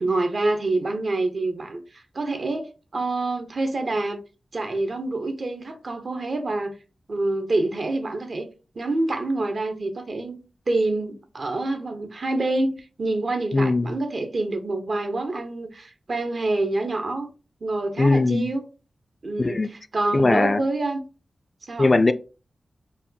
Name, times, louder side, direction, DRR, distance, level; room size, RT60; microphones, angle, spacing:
voice 1, 0.0-4.2 4.5-6.7 7.1-8.5 8.8-10.4 10.7-17.3 17.6-18.6 19.2-21.0 21.6-22.0, right 2 dB, 65° right, 0.7 m, -27 dB
voice 2, 13.5-13.9 18.0-18.5 19.4-19.7 20.1-20.6 21.8-22.1, left 2 dB, 45° left, 0.3 m, -19 dB
4.1 x 2.2 x 2.6 m
cardioid pair, 45°, 0 cm